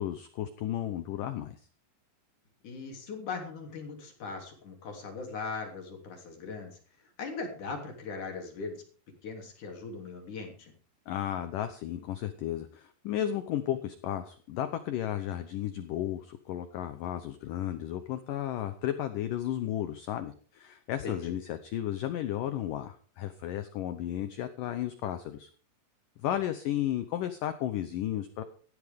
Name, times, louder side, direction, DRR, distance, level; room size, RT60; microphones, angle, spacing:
voice 1, 0.0-1.6 11.1-25.5 26.2-28.4, left 11 dB, 85° left, 10 dB, 1.9 m, -33 dB
voice 2, 2.6-6.8 7.2-8.7 9.2-10.7 21.0-21.4, left 4 dB, 50° left, 2 dB, 4.2 m, -39 dB
17.0 x 13.5 x 3.6 m, 0.43 s
omnidirectional pair, 5.0 m